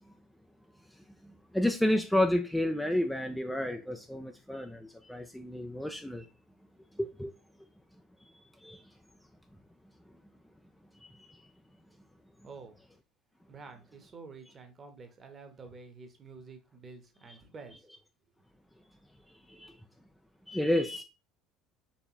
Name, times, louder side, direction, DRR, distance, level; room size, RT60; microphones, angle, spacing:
voice 1, 1.5-6.2 7.0-7.3 8.6-8.8 19.5-19.7 20.5-21.0, left 1 dB, 5° left, 0.4 m, -30 dB
voice 2, 12.4-12.8 13.5-17.9, right 4 dB, 30° right, 1.0 m, -49 dB
4.2 x 3.3 x 3.0 m
figure-of-eight pair, 65°, 0 cm